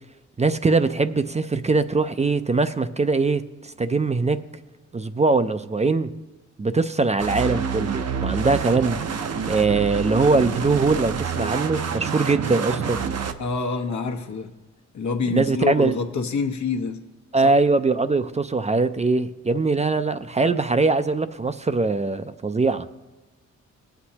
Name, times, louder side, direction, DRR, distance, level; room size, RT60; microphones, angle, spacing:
voice 1, 0.4-4.4 4.9-6.1 6.6-9.0 9.5-13.0 15.3-15.9 17.3-22.9, right 3 dB, 25° right, 11 dB, 0.4 m, -22 dB
sound 1, 7.2-13.3, right 6 dB, 60° right, 0.8 m, -28 dB
voice 2, 13.4-14.5 14.9-17.0 17.4-17.5, left 5 dB, 75° left, 4 dB, 1.1 m, -26 dB
18.5 x 8.0 x 2.9 m, 1.2 s
cardioid pair, 70°, 29 cm